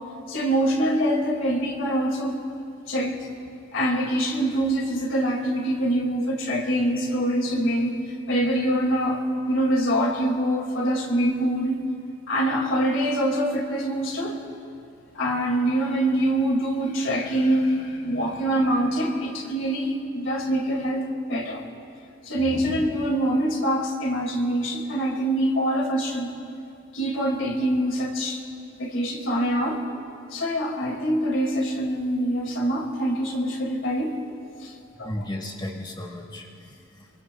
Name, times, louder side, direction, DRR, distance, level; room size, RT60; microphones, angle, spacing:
voice 1, 0.3-2.4 2.9-3.3 3.7-8.0 8.3-11.8 12.3-14.4 15.1-21.6 22.2-26.3 26.9-28.4 28.8-29.8 30.3-34.1 34.6-34.7 35.0-35.1, right 1 dB, 85° left, 1 dB, 2.1 m, -24 dB
voice 2, 35.0-37.1, left 1 dB, 25° left, 1 dB, 1.3 m, -35 dB
25.0 x 23.0 x 2.3 m, 2.6 s
head